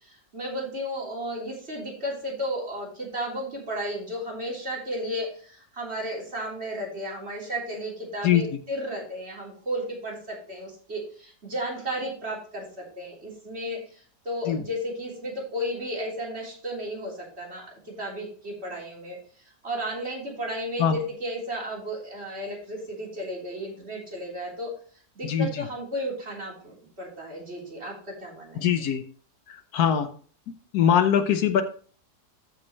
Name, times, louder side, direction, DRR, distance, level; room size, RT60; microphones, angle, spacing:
voice 1, 0.0-19.2 19.6-24.7 25.2-28.6, equal, 40° right, -3 dB, 3.7 m, -34 dB
voice 2, 25.2-25.7 28.6-29.0 29.5-30.1 30.7-31.6, left 8 dB, 75° left, 10 dB, 1.3 m, -22 dB
14.0 x 5.4 x 3.1 m, 0.43 s
omnidirectional pair, 1.7 m